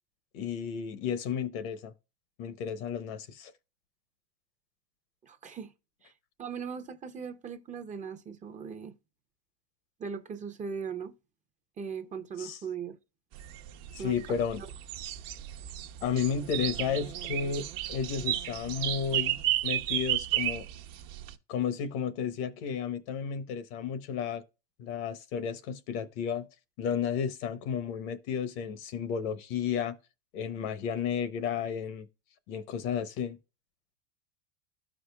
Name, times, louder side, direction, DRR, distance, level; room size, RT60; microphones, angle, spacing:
voice 1, 0.3-1.9 2.4-3.5 12.4-12.6 14.0-14.6 16.0-20.6 21.5-24.4 24.8-26.5 26.8-29.9 30.3-32.1 32.5-33.4, left 7 dB, 60° left, 1.0 m, -32 dB
voice 2, 5.2-5.7 6.0-6.1 6.4-8.9 10.0-11.1 11.8-13.0 14.0-14.4, right 6 dB, 25° right, 0.7 m, -39 dB
sound 1, 13.3-21.3, right 13 dB, 50° right, 0.9 m, -33 dB
12.5 x 5.1 x 2.3 m
supercardioid pair, 125°, 32 cm